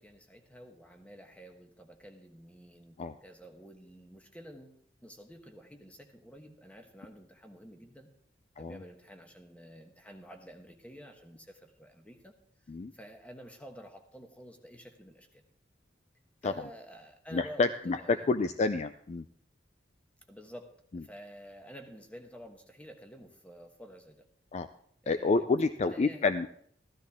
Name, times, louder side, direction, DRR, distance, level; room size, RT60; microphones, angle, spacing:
voice 1, 0.0-8.1 8.6-12.3 12.9-15.4 16.4-18.6 20.3-24.3 25.0-25.4 25.8-26.3, equal, 10° left, 5 dB, 1.2 m, -50 dB
voice 2, 17.3-19.3 24.5-24.7 25.1-26.5, left 3 dB, 40° left, 11 dB, 0.4 m, -29 dB
14.0 x 12.5 x 3.5 m, 0.64 s
head